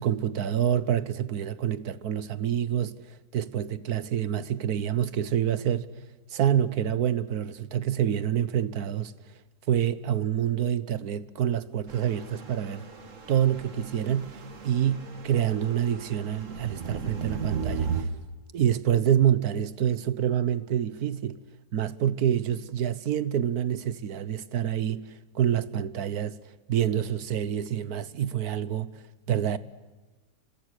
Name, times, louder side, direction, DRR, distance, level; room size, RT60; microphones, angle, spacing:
voice 1, 0.0-5.9 6.3-9.1 9.7-12.9 13.3-18.1 18.5-21.4 21.7-26.4 26.7-28.9 29.3-29.6, right 10 dB, 70° right, 1.5 m, -27 dB
sound 1, 11.9-18.0, right 6 dB, 50° right, 2.1 m, -36 dB
29.5 x 26.0 x 6.5 m
omnidirectional pair, 1.7 m